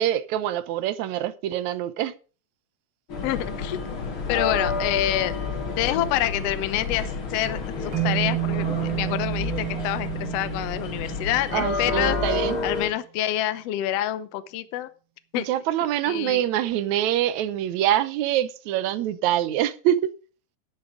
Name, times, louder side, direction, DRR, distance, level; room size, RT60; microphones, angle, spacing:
voice 1, 0.0-2.1 11.5-12.6 15.4-20.1, right 12 dB, 75° right, 2.1 m, -25 dB
sound 1, 3.1-12.9, left 4 dB, 45° left, 2.6 m, -30 dB
voice 2, 3.2-3.8 4.3-5.3 5.8-12.2 12.6-14.9 15.3-15.5 16.1-16.4, left 13 dB, 70° left, 1.7 m, -27 dB
sound 2, 7.9-12.2, right 22 dB, 50° right, 1.5 m, -30 dB
11.0 x 8.8 x 5.0 m
omnidirectional pair, 3.4 m